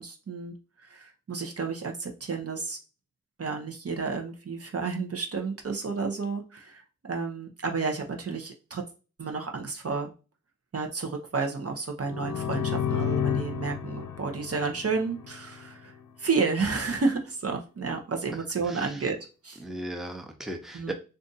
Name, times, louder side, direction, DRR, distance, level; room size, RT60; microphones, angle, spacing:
voice 1, 0.0-2.8 3.4-8.8 9.2-10.1 10.7-15.9 16.2-19.2 19.4-19.6 20.7-20.9, right 4 dB, 50° right, 3 dB, 0.7 m, -31 dB
sound 1, 12.0-15.7, left 8 dB, 70° left, 0.6 m, -31 dB
voice 2, 18.6-19.1 19.6-20.9, right 1 dB, ahead, 4 dB, 0.7 m, -37 dB
2.5 x 2.5 x 3.9 m, 0.32 s
cardioid pair, 50°, 32 cm